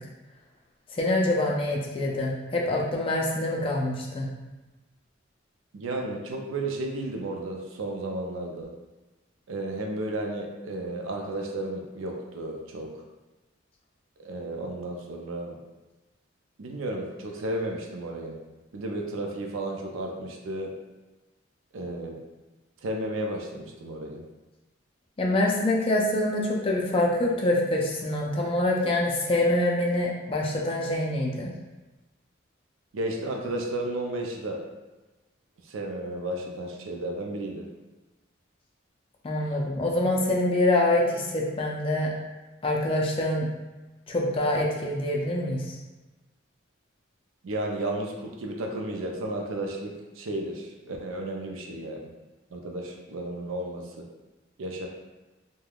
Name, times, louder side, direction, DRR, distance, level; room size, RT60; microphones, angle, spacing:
voice 1, 1.0-4.3 25.2-31.5 39.2-42.1 42.6-43.5 44.1-45.6, left 1 dB, 25° left, -2 dB, 0.4 m, -25 dB
voice 2, 5.7-8.7 9.5-13.0 14.2-15.6 16.6-18.4 18.7-20.7 21.7-22.2 22.8-24.2 32.9-34.6 35.6-37.7 47.4-52.1 52.5-54.1 54.6-54.9, right 1 dB, 90° right, 1 dB, 0.5 m, -33 dB
3.3 x 2.2 x 2.3 m, 1.1 s
head